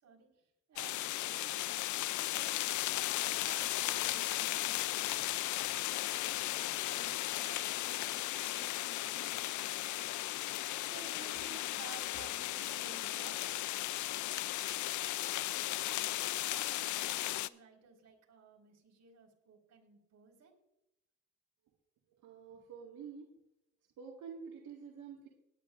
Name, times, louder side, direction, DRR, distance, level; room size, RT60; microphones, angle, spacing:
voice 1, 0.0-1.8 2.2-5.1 6.1-10.1 10.6-13.7 14.8-20.5 22.5-22.7, right 5 dB, 65° right, 0 dB, 4.7 m, -57 dB
sound 1, 0.8-17.5, left 15 dB, 75° left, 0.5 m, -36 dB
voice 2, 22.1-23.3 24.0-25.3, right 6 dB, 80° right, -1 dB, 1.9 m, -48 dB
18.5 x 11.0 x 2.5 m, 0.86 s
cardioid pair, 90°, 30 cm